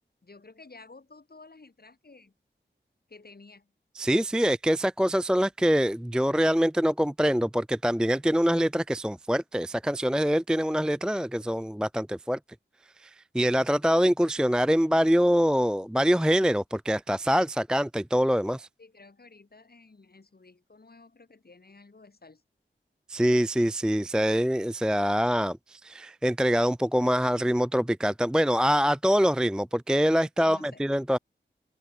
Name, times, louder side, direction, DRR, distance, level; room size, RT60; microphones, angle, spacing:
voice 1, 0.2-2.3 3.1-3.7 18.8-22.4 30.4-30.8, left 3 dB, 50° left, 3.4 m, -52 dB
voice 2, 3.9-12.4 13.0-18.7 23.1-31.2, equal, 5° right, 0.4 m, -24 dB
open air
wide cardioid pair, 55°, 20 cm